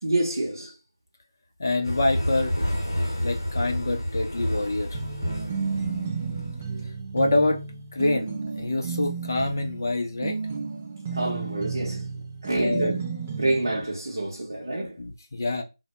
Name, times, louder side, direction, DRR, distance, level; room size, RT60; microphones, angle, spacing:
voice 1, 0.0-0.7 11.1-12.0 12.4-13.0 13.4-15.0, right 2 dB, 55° right, 0.7 m, -27 dB
voice 2, 1.6-2.6 3.0-4.9 7.1-7.6 7.9-10.4 12.5-12.9 15.0-15.6, left 2 dB, 45° left, 0.6 m, -26 dB
sound 1, 1.8-6.6, equal, 75° left, 0.9 m, -29 dB
sound 2, 4.9-13.8, right 5 dB, 15° right, 0.4 m, -32 dB
2.1 x 2.1 x 2.9 m
figure-of-eight pair, 170°, 2 cm